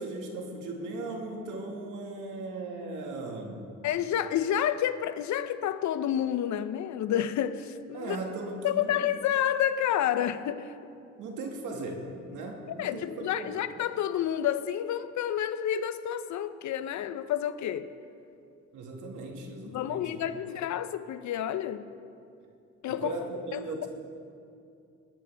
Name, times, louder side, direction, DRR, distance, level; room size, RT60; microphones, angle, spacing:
voice 1, 0.0-3.7 7.9-9.0 11.2-13.6 18.7-20.2 22.9-23.9, right 2 dB, 85° right, 1.9 m, -38 dB
voice 2, 3.8-8.2 8.6-10.7 12.8-17.9 19.7-21.8 22.8-23.1 23.5-23.6, left 10 dB, 70° left, 0.7 m, -29 dB
19.5 x 11.5 x 3.4 m
cardioid pair, 90°, 30 cm